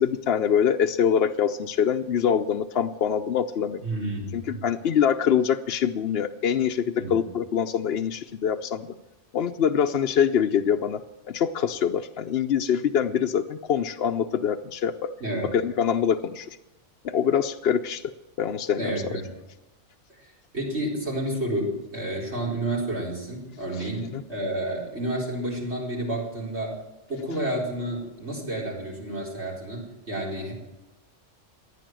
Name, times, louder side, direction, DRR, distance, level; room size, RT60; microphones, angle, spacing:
voice 1, 0.0-3.8 4.3-6.8 7.1-8.9 9.3-11.0 11.3-15.1 15.5-16.5 17.0-18.1 18.4-19.2 24.1-24.2, left 8 dB, 60° left, 5 dB, 0.8 m, -24 dB
voice 2, 3.8-4.6 7.0-7.1 15.2-15.5 18.8-19.3 20.5-26.8 27.1-30.5, right 1 dB, 65° right, -4 dB, 4.6 m, -30 dB
15.0 x 10.0 x 7.6 m, 1.0 s
omnidirectional pair, 1.2 m